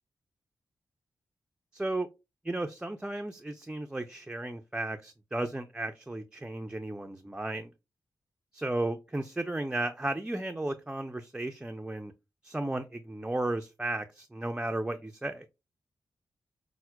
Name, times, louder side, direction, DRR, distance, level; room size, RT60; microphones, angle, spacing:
voice 1, 1.7-2.1 2.4-7.7 8.5-12.1 12.4-15.4, right 2 dB, 10° right, 0.4 m, -34 dB
5.5 x 2.1 x 2.2 m
cardioid pair, 55°, 8 cm